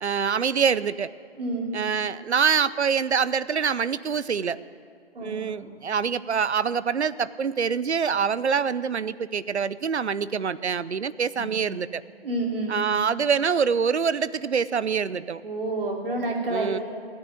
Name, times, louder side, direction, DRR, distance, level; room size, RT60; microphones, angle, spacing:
voice 1, 0.0-1.1 1.7-4.6 5.2-12.0 12.7-15.4 16.5-16.8, right 6 dB, 90° right, 17 dB, 0.7 m, -25 dB
voice 2, 1.4-1.7 5.1-5.5 11.4-11.5 12.2-12.8 15.4-16.8, right 2 dB, 60° right, 0 dB, 3.4 m, -29 dB
16.5 x 10.0 x 8.2 m, 2.2 s
figure-of-eight pair, 155°, 32 cm